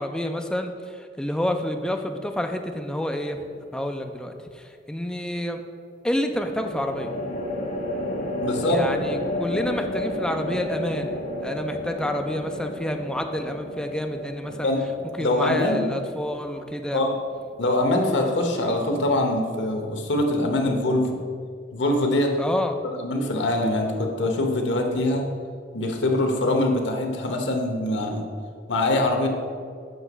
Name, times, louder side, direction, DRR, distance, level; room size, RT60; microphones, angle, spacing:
voice 1, 0.0-3.4 3.7-5.6 6.0-7.1 8.7-14.7 15.2-17.0 22.4-22.8, left 1 dB, 5° left, 5 dB, 0.4 m, -29 dB
sound 1, 3.2-3.8 6.3-17.7, left 1 dB, 45° left, 0.8 m, -32 dB
voice 2, 8.4-8.8 14.6-14.8 15.2-15.9 16.9-17.1 17.6-21.2 21.7-22.3 23.0-25.3 25.7-28.2 28.7-29.3, left 1 dB, 90° left, 3 dB, 0.9 m, -23 dB
7.7 x 3.0 x 5.9 m, 2.2 s
head